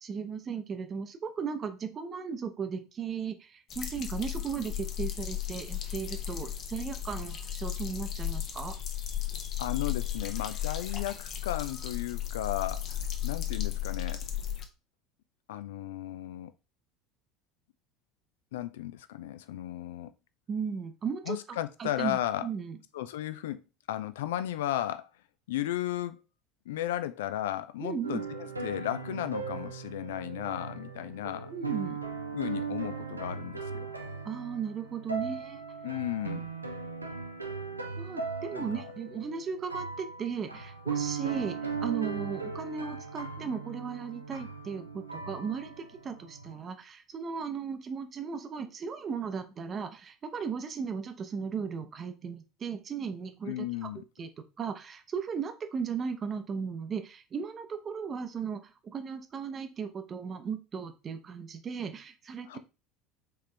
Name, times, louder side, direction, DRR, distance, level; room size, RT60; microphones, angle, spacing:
voice 1, 0.0-8.7 20.5-22.8 27.8-28.2 31.5-32.0 34.2-35.6 38.0-53.9 54.2-54.3 54.6-62.6, right 6 dB, 30° right, 0.8 m, -36 dB
sound 1, 3.7-14.6, left 11 dB, 45° left, 0.8 m, -35 dB
voice 2, 9.6-14.3 15.5-16.5 18.5-20.1 21.3-22.5 22.9-25.1 25.5-26.2 26.7-31.5 32.3-33.9 35.8-36.5 38.5-38.9 53.5-54.0 62.5-62.6, left 13 dB, 65° left, 0.4 m, -35 dB
sound 2, 28.0-46.6, right 5 dB, 85° right, 0.5 m, -38 dB
4.5 x 3.5 x 3.3 m
figure-of-eight pair, 70°, 0 cm